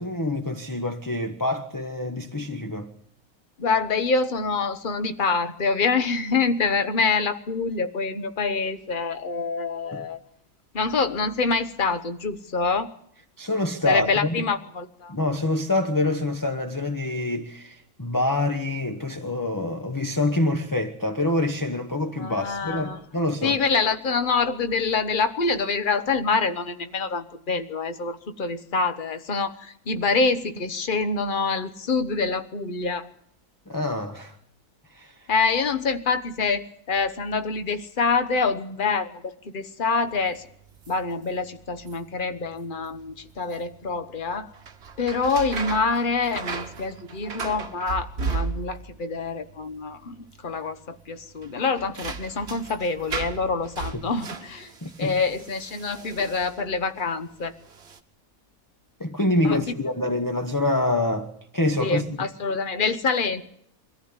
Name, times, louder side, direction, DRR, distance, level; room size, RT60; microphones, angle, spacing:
voice 1, 0.0-2.9 9.9-10.0 13.4-14.4 15.1-23.5 33.7-34.4 34.9-35.1 54.8-55.1 59.0-62.2, left 2 dB, 15° left, 1.0 m, -26 dB
voice 2, 3.6-10.2 10.7-12.9 13.8-15.1 22.2-23.0 23.4-33.1 35.3-40.5 40.9-44.5 45.0-54.7 55.0-57.5 59.4-59.7 61.8-63.4, left 4 dB, 35° left, 1.2 m, -26 dB
sound 1, 40.0-57.0 57.6-58.0, right 5 dB, 50° right, 1.4 m, -37 dB
23.0 x 14.5 x 9.7 m
omnidirectional pair, 1.5 m